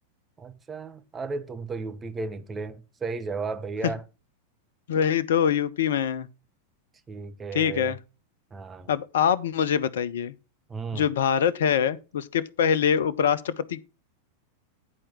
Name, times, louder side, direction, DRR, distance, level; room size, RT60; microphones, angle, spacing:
voice 1, 0.4-4.0 7.1-7.9 8.5-8.9 10.7-11.1, right 4 dB, 20° right, 1.0 m, -34 dB
voice 2, 4.9-6.3 7.5-8.0 8.9-10.3 10.9-13.8, left 8 dB, 60° left, 0.5 m, -24 dB
9.9 x 4.4 x 6.1 m
figure-of-eight pair, 90°, 0 cm